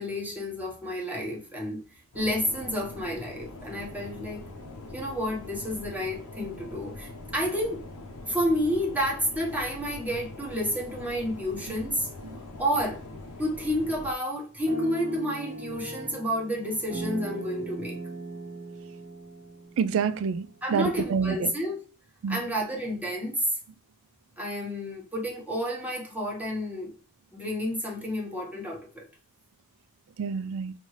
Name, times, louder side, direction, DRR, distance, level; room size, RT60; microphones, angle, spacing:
voice 1, 0.0-1.8 2.1-4.4 4.9-7.9 8.2-12.1 12.6-13.0 13.4-18.0 20.6-21.8 22.3-23.6 24.4-26.9 27.3-29.0, equal, 5° right, 1.1 m, -30 dB
sound 1, 2.1-14.1, left 2 dB, 80° left, 0.7 m, -43 dB
sound 2, 14.7-20.7, right 1 dB, 35° right, 1.1 m, -38 dB
voice 2, 19.8-21.5 22.2-22.4 30.2-30.7, right 6 dB, 65° right, 0.4 m, -27 dB
5.2 x 2.7 x 3.2 m
head